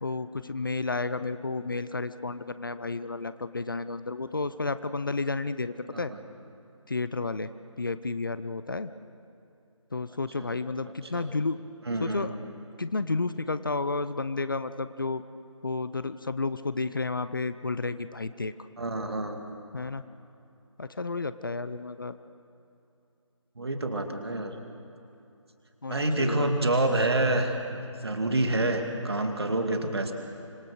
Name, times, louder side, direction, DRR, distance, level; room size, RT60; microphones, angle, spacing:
voice 1, 0.0-6.1 6.9-7.5 7.8-8.9 9.9-11.6 12.0-12.4 12.8-15.2 15.6-18.5 19.7-20.0 20.8-22.1 25.8-26.5, left 3 dB, 40° left, 13 dB, 0.6 m, -31 dB
voice 2, 11.9-12.3 18.8-19.4 23.6-24.5 25.9-30.1, right 2 dB, 50° right, 5 dB, 2.3 m, -27 dB
26.0 x 21.0 x 6.5 m, 2.8 s
figure-of-eight pair, 160°, 17 cm